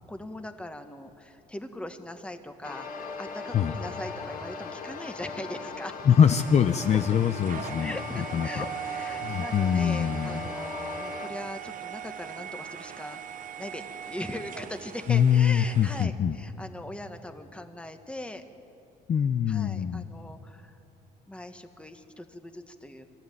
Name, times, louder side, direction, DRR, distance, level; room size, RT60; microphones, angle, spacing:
voice 1, 0.1-5.9 7.8-13.2 13.6-18.4 19.5-20.8 21.3-23.1, left 1 dB, 5° left, 7 dB, 1.5 m, -40 dB
sound 1, 2.6-11.3, left 4 dB, 55° left, 2.6 m, -39 dB
voice 2, 6.0-7.9 8.3-8.7 9.2-10.5 15.1-16.4 19.1-20.1, left 8 dB, 40° left, 8 dB, 0.7 m, -23 dB
sound 2, 6.2-16.0, right 9 dB, 50° right, 1.0 m, -40 dB
23.0 x 14.5 x 9.4 m, 2.8 s
cardioid pair, 110°, 17 cm